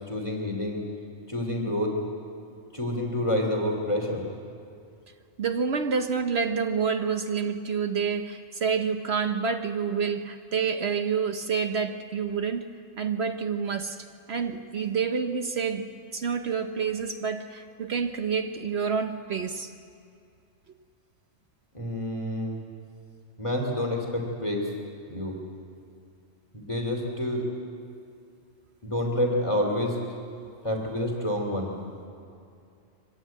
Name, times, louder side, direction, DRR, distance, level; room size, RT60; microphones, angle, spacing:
voice 1, 0.1-0.8 1.3-2.0 2.7-4.2 21.7-22.6 23.4-24.7 25.1-25.4 26.5-27.4 28.8-30.0 30.6-31.8, left 1 dB, 25° left, 0 dB, 2.6 m, -28 dB
voice 2, 5.4-12.7 13.0-14.0 14.3-19.7 30.3-30.5, right 6 dB, 60° right, 7 dB, 1.1 m, -28 dB
23.5 x 16.0 x 9.1 m, 2.5 s
omnidirectional pair, 1.3 m